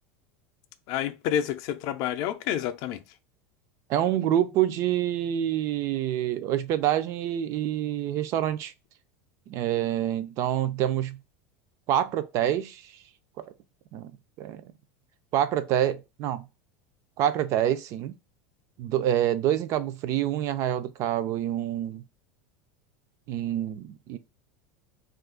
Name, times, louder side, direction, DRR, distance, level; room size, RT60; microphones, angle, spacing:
voice 1, 0.9-3.0, left 10 dB, 50° left, 0.4 m, -29 dB
voice 2, 3.9-8.7 9.5-11.2 11.9-12.9 13.9-14.6 15.3-16.5 17.2-18.2 18.8-22.0 23.3-24.2, right 11 dB, 40° right, 0.3 m, -27 dB
2.6 x 2.4 x 3.7 m
supercardioid pair, 150°, 8 cm